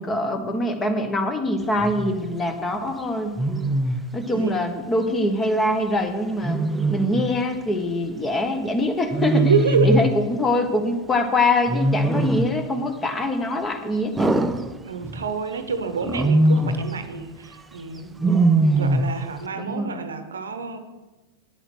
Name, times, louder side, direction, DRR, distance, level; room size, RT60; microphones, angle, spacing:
voice 1, 0.0-3.3 4.1-6.6 6.9-9.5 9.8-14.4 18.6-18.9 19.6-20.0, left 1 dB, 15° left, 7 dB, 1.3 m, -24 dB
Wild animals, 1.8-2.2 3.4-4.1 6.4-7.3 9.1-10.2 11.7-12.6 14.2-15.3 16.0-16.9 18.2-19.2, right 2 dB, 10° right, 0.5 m, -21 dB
voice 2, 9.3-10.0 14.8-18.2 18.8-20.8, right 5 dB, 70° right, 10 dB, 0.9 m, -27 dB
9.4 x 7.7 x 6.1 m, 1.1 s
figure-of-eight pair, 90°, 0 cm